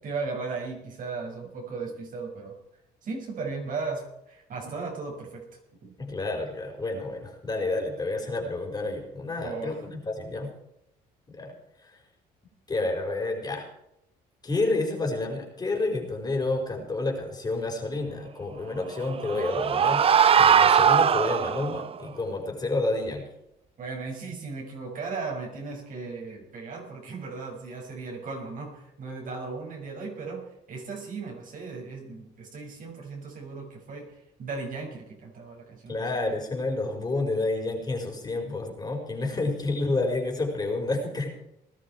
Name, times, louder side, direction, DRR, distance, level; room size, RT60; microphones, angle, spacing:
voice 1, 0.0-2.6 3.0-5.5 5.8-5.9 9.4-9.8 19.3-19.6 23.8-36.3 39.3-39.5, right 4 dB, 50° right, 0 dB, 6.4 m, -36 dB
voice 2, 6.0-10.5 11.3-11.5 11.8-12.0 12.7-13.7 14.4-20.0 20.3-23.3 35.9-41.3, left 2 dB, 25° left, 1 dB, 4.8 m, -29 dB
sound 1, 18.9-21.9, right 8 dB, 35° right, 0.6 m, -20 dB
20.0 x 12.5 x 4.5 m, 0.82 s
cardioid pair, 110°, 17 cm